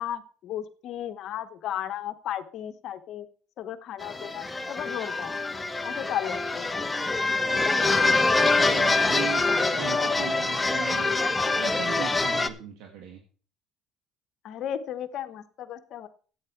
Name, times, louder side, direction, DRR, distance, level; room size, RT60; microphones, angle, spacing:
voice 1, 0.0-3.3 3.6-5.3 5.8-7.1 7.5-7.7 14.4-16.1, left 10 dB, 60° left, 10 dB, 1.0 m, -35 dB
sound 1, 4.0-12.5, left 3 dB, 15° left, 0.8 m, -25 dB
voice 2, 8.6-13.2, right 8 dB, 75° right, 3 dB, 1.6 m, -38 dB
11.5 x 8.8 x 4.5 m, 0.40 s
supercardioid pair, 100°, 0 cm